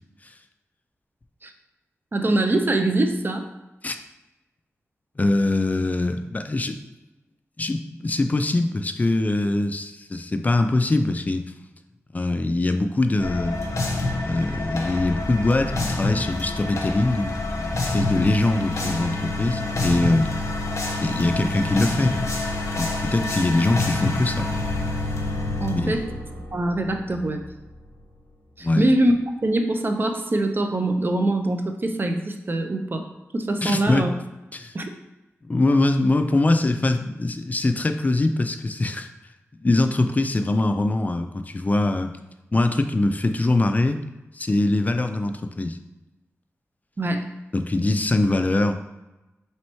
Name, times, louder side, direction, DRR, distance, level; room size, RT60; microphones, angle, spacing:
voice 1, 2.1-3.5 25.6-26.0 26.5-27.4 28.6-29.1 29.4-33.1 33.3-34.1 34.7-34.9 47.0-47.3, right 1 dB, 40° right, 5 dB, 0.5 m, -23 dB
voice 2, 5.2-6.8 7.6-11.4 12.1-13.6 14.3-20.3 21.0-22.3 22.7-24.5 25.7-25.9 28.6-28.9 33.6-34.1 34.5-34.7 35.4-39.1 39.6-42.1 42.5-44.0 44.3-45.8 47.5-48.7, left 2 dB, 30° left, 7 dB, 0.3 m, -23 dB
sound 1, 13.2-27.9, left 2 dB, 70° left, 0.7 m, -27 dB
3.1 x 3.0 x 4.3 m, 1.0 s
cardioid pair, 60°, 5 cm